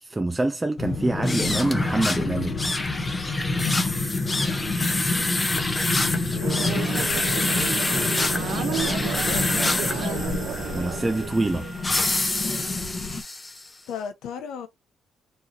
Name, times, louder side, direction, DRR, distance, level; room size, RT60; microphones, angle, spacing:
voice 1, 0.0-2.6 10.7-11.7, right 2 dB, 15° right, 0.3 m, -25 dB
sound 1, 0.8-13.2, left 3 dB, 30° left, 1.0 m, -29 dB
sound 2, 1.2-13.7, left 2 dB, 15° left, 0.7 m, -28 dB
voice 2, 6.3-7.1 9.2-10.4 13.9-14.7, left 8 dB, 85° left, 0.8 m, -37 dB
sound 3, 6.4-11.8, right 8 dB, 75° right, 0.6 m, -32 dB
4.5 x 3.0 x 2.8 m
cardioid pair, 140°, 0 cm